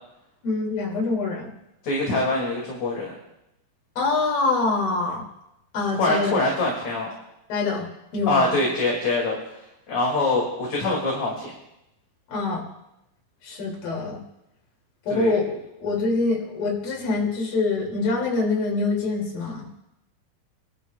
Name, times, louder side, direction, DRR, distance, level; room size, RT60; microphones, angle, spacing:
voice 1, 0.4-1.5 4.0-5.2 5.7-6.4 7.5-7.9 8.1-8.6 12.3-12.6 13.4-14.2 15.1-15.5 15.8-19.7, left 3 dB, 80° left, -2 dB, 4.4 m, -25 dB
voice 2, 1.8-3.1 6.0-7.1 8.3-9.4 9.9-11.5 15.1-15.3, left 2 dB, 50° left, -2 dB, 3.5 m, -24 dB
26.5 x 12.5 x 2.4 m, 0.86 s
omnidirectional pair, 4.1 m